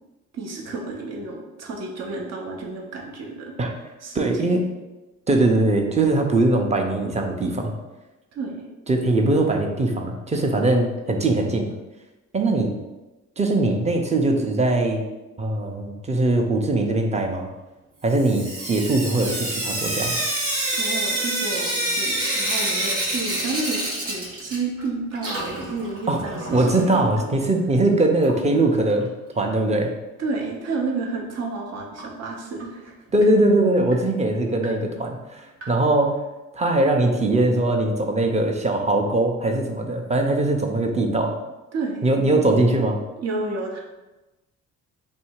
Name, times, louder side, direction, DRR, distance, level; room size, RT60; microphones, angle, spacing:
voice 1, 0.3-3.5 4.0-4.6 8.3-8.6 20.8-23.8 24.0-26.9 30.2-32.9 41.7-42.1 43.2-43.8, right 3 dB, 60° right, 0 dB, 0.9 m, -31 dB
voice 2, 4.1-4.6 5.3-7.7 8.9-11.7 12.3-12.7 13.4-15.0 15.4-17.5 18.0-20.2 26.1-26.2 26.5-29.1 29.4-29.9 33.1-36.1 36.5-41.3 42.0-43.0, right 2 dB, 20° right, 3 dB, 0.6 m, -21 dB
Sink (filling or washing) / Drip, 18.1-24.9 25.1-27.1 28.2-28.3 28.6-28.7 29.0-29.1 32.0-32.1 32.6-32.7 33.2-33.3 33.9-34.0 34.6-34.7 35.6-35.7, right 1 dB, 80° right, 1.3 m, -27 dB
3.2 x 2.7 x 4.6 m, 1.1 s
cardioid pair, 90°, 30 cm